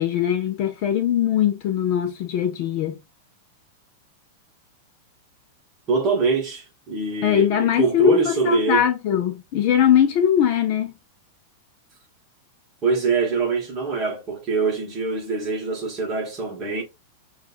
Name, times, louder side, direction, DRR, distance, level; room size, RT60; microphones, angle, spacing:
voice 1, 0.0-3.0 7.2-10.9, left 9 dB, 35° left, 0.5 m, -21 dB
voice 2, 5.9-8.8 12.8-16.8, right 4 dB, 20° right, 1.4 m, -24 dB
6.2 x 2.4 x 2.5 m
supercardioid pair, 175°, 0 cm